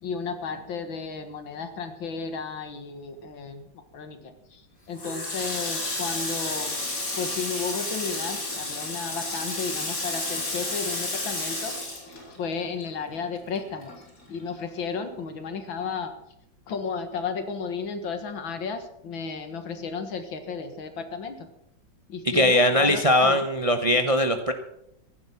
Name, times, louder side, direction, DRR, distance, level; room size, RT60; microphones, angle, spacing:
voice 1, 0.0-3.6 3.9-4.6 4.9-6.8 7.1-11.7 12.1-13.9 14.3-16.1 16.7-21.5 22.1-23.4, left 5 dB, 90° left, 8 dB, 2.4 m, -33 dB
Water tap faucet, 5.0-12.8 13.1-14.4, left 2 dB, 45° left, 3.9 m, -31 dB
voice 2, 22.2-24.5, left 1 dB, 30° right, 7 dB, 0.6 m, -20 dB
15.5 x 11.0 x 5.9 m, 0.77 s
omnidirectional pair, 2.1 m